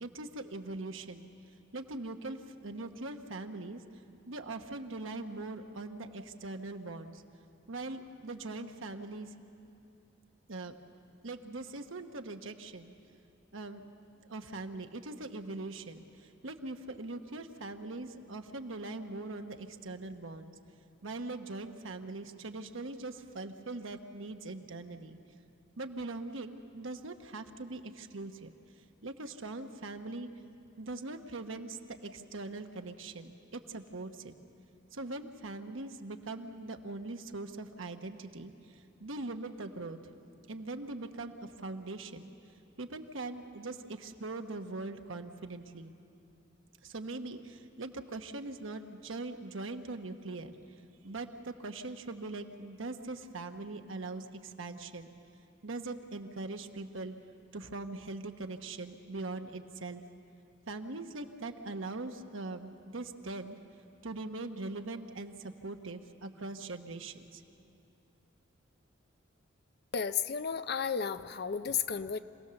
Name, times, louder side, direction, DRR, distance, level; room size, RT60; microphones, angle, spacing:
voice 1, 0.0-1.3 1.7-3.8 4.3-7.2 7.7-9.3 10.5-10.7 11.2-12.9 13.5-13.8 14.3-20.5 21.0-25.2 25.8-28.5 29.0-30.3 30.8-34.3 34.9-40.0 40.5-42.3 42.8-45.9 46.8-50.6 51.0-55.1 55.6-57.1 57.5-60.0 60.7-63.6 64.0-67.4, right 2 dB, 75° right, 6 dB, 1.1 m, -41 dB
voice 2, 69.9-72.2, left 7 dB, 55° left, 12 dB, 0.6 m, -33 dB
26.0 x 17.5 x 6.9 m, 2.8 s
head